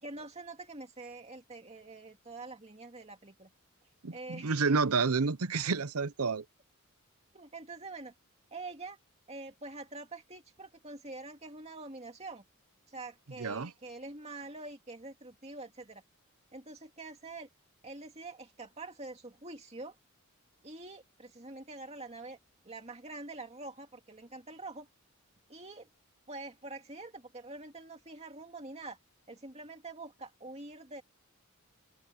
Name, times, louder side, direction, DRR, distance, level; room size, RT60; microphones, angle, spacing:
voice 1, 0.0-3.5 4.1-4.6 7.3-8.1 8.5-9.0 9.3-12.4 12.9-16.0 16.5-17.5 17.8-20.0 20.6-22.4 22.6-24.9 25.5-25.9 26.3-29.0 29.3-31.0, right 2 dB, 30° right, 2.3 m, -45 dB
voice 2, 4.0-6.4 13.4-13.7, right 4 dB, 80° right, 0.8 m, -29 dB
open air
head